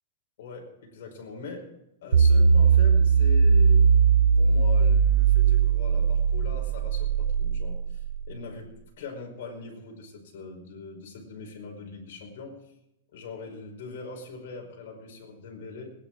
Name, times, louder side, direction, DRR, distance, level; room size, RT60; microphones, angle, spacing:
voice 1, 0.4-1.7 2.0-12.6 13.1-15.9, left 3 dB, 65° left, 1 dB, 5.1 m, -42 dB
sound 1, 2.1-8.4, right 6 dB, 90° right, 0.7 m, -20 dB
19.5 x 10.5 x 4.6 m, 0.85 s
supercardioid pair, 155°, 0 cm